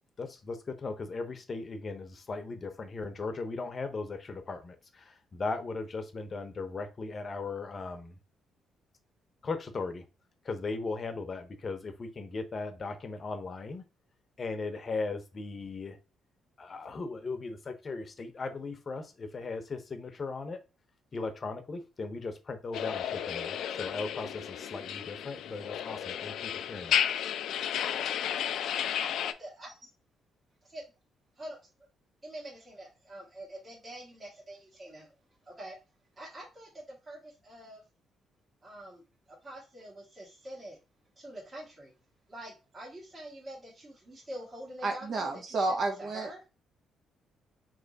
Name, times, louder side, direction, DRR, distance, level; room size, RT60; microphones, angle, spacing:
voice 1, 0.2-8.2 9.4-10.0 10.4-13.8 14.4-16.0 16.6-20.6 21.1-27.0, left 3 dB, 40° left, 7 dB, 0.8 m, -37 dB
sound 1, 22.7-29.3, left 9 dB, 75° left, 0.4 m, -33 dB
voice 2, 29.0-29.7 30.7-30.8 31.4-31.6 32.2-35.1 35.4-35.8 36.1-37.8 38.6-40.8 41.2-41.9 42.3-46.4, right 1 dB, 30° right, -5 dB, 1.5 m, -46 dB
voice 3, 44.8-46.3, right 3 dB, 55° right, 2 dB, 1.0 m, -31 dB
3.3 x 3.1 x 4.0 m, 0.30 s
cardioid pair, 90°, 0 cm